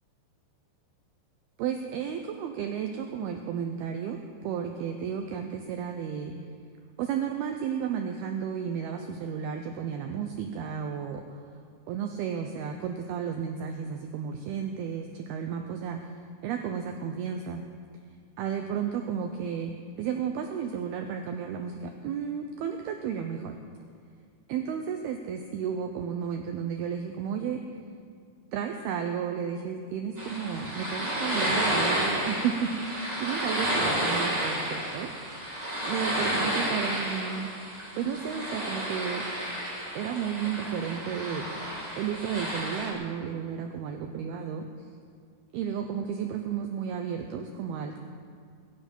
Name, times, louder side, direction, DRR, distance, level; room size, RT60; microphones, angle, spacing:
voice 1, 1.6-6.3 7.0-11.4 11.9-16.2 16.4-17.6 18.4-19.7 20.0-23.6 24.5-27.6 28.5-35.3 35.9-37.5 37.9-39.2 39.9-41.5 42.0-44.6 45.5-48.0, right 7 dB, 90° right, 5 dB, 2.2 m, -33 dB
sound 1, 30.2-42.9, right 1 dB, 10° right, 2.7 m, -31 dB
22.0 x 11.5 x 5.4 m, 2.1 s
omnidirectional pair, 5.5 m